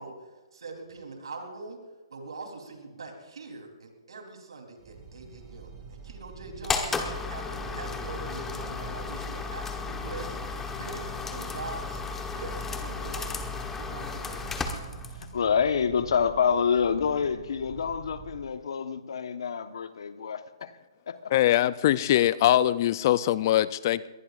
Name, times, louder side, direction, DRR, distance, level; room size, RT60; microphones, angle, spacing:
voice 1, 0.0-1.8 2.1-7.0 7.3-13.4 13.8-14.4, right 3 dB, 80° right, 3.6 m, -43 dB
sound 1, 4.8-18.5, right 5 dB, 20° right, 2.1 m, -46 dB
sound 2, 6.6-15.4, left 4 dB, 10° left, 1.2 m, -34 dB
voice 2, 15.1-20.7 21.1-21.3, left 6 dB, 70° left, 1.2 m, -27 dB
voice 3, 21.3-24.1, left 13 dB, 40° left, 0.5 m, -22 dB
22.0 x 19.0 x 2.5 m
hypercardioid pair, 145°, 3 cm